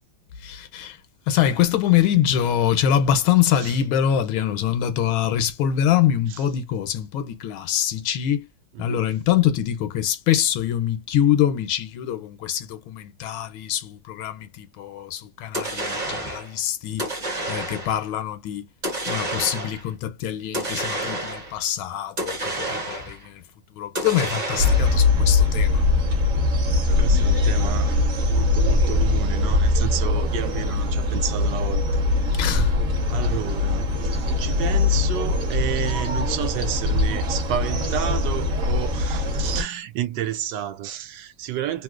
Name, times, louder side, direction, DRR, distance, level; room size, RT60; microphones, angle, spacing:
voice 1, 0.4-1.0 1.3-8.5 8.8-17.1 17.5-18.7 19.1-23.4 23.8-25.9 32.3-32.7, left 10 dB, 80° left, 1.4 m, -24 dB
sound 1, 15.5-16.5 17.0-18.0 18.8-19.9 20.5-21.6 22.2-23.3 24.0-25.0, right 1 dB, 25° right, 1.1 m, -29 dB
sound 2, 24.6-39.6, left 3 dB, 50° right, 1.2 m, -21 dB
voice 2, 26.6-32.4 33.1-33.9 34.4-41.8, right 11 dB, 70° right, 1.1 m, -31 dB
3.3 x 2.7 x 2.4 m
omnidirectional pair, 2.3 m